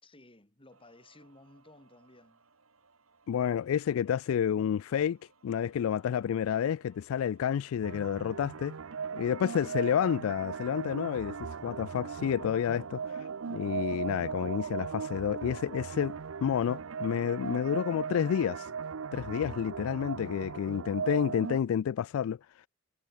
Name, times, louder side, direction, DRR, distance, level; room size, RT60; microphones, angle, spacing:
voice 1, 0.0-2.4, left 2 dB, 25° left, 3.8 m, -56 dB
sound 1, 0.7-18.5, right 4 dB, 85° right, 2.8 m, -66 dB
voice 2, 3.3-5.2 5.4-8.8 9.1-18.7 19.1-22.4, left 8 dB, 75° left, 0.3 m, -30 dB
sound 2, 7.8-21.6, right 6 dB, 70° right, 0.6 m, -38 dB
head